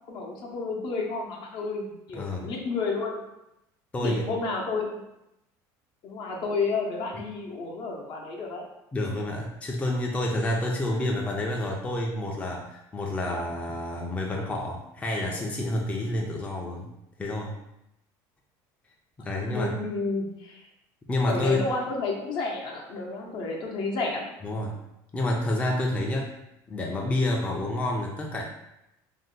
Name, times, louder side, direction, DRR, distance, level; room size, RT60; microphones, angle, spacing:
voice 1, 0.0-3.2 4.0-5.0 6.0-8.6 19.5-20.6 21.3-24.2, left 3 dB, 55° left, 0 dB, 0.7 m, -31 dB
voice 2, 2.1-2.5 3.9-4.2 7.1-7.2 8.9-16.9 17.2-17.5 19.2-19.7 21.1-21.7 24.4-24.8 25.1-26.3 26.7-28.4, left 1 dB, 15° left, -1 dB, 0.4 m, -29 dB
2.6 x 2.1 x 3.7 m, 0.88 s
supercardioid pair, 115°, 9 cm